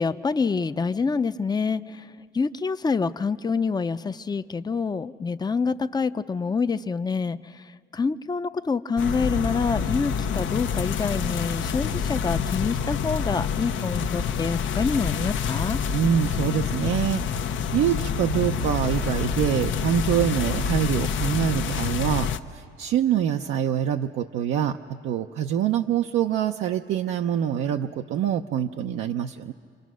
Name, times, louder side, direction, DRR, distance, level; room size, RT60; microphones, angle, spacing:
voice 1, 0.0-2.1 2.3-7.6 7.9-15.8, left 4 dB, 20° left, 11 dB, 0.6 m, -26 dB
sound 1, 9.0-22.4, left 6 dB, 75° left, 0.9 m, -27 dB
voice 2, 15.9-17.2 17.7-29.5, right 9 dB, 80° right, 4 dB, 0.6 m, -25 dB
27.5 x 26.0 x 6.3 m, 2.2 s
cardioid pair, 90°, 20 cm